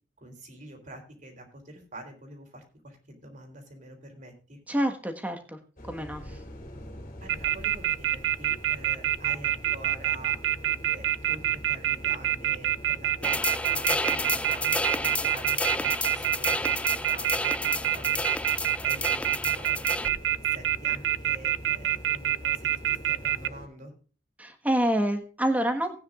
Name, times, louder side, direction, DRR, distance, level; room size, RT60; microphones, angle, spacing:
voice 1, 0.2-4.6 7.2-18.2 18.8-20.2 20.5-23.9, right 1 dB, 45° right, 4 dB, 3.7 m, -46 dB
voice 2, 4.7-5.6 5.9-6.4 24.4-26.0, right 1 dB, 10° right, 4 dB, 1.5 m, -27 dB
sound 1, 5.8-23.7, left 1 dB, 45° left, 3.0 m, -44 dB
sound 2, 7.3-23.5, right 11 dB, 80° right, 0.4 m, -26 dB
sound 3, 13.2-20.1, left 2 dB, 5° left, 0.4 m, -31 dB
18.5 x 9.5 x 2.5 m, 0.38 s
head